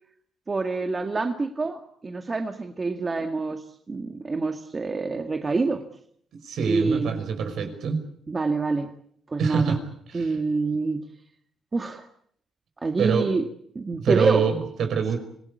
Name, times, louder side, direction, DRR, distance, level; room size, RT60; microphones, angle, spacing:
voice 1, 0.5-5.8 6.7-7.1 8.3-8.9 9.3-9.8 10.1-11.0 11.7-12.1 12.8-13.4 13.8-14.5, right 3 dB, 30° right, 5 dB, 2.0 m, -26 dB
voice 2, 6.4-8.0 9.4-9.8 10.1-10.4 13.0-13.3 14.0-15.2, right 6 dB, 70° right, 7 dB, 5.7 m, -25 dB
26.5 x 18.5 x 8.4 m, 0.66 s
cardioid pair, 90°, 0 cm